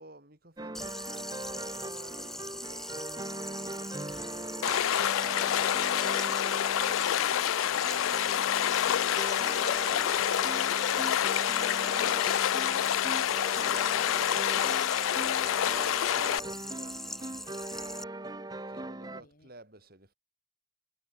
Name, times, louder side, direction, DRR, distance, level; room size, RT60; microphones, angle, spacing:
voice 1, 0.0-3.2 15.2-18.0 18.7-20.1, right 1 dB, 45° right, 4.6 m, -54 dB
sound 1, 0.6-19.2, right 2 dB, 20° right, 0.9 m, -41 dB
sound 2, 0.7-18.0, left 1 dB, ahead, 1.1 m, -42 dB
Stream, 4.6-16.4, left 10 dB, 80° left, 0.4 m, -27 dB
voice 2, 15.6-16.0 19.1-19.6, left 1 dB, 40° left, 7.2 m, -61 dB
head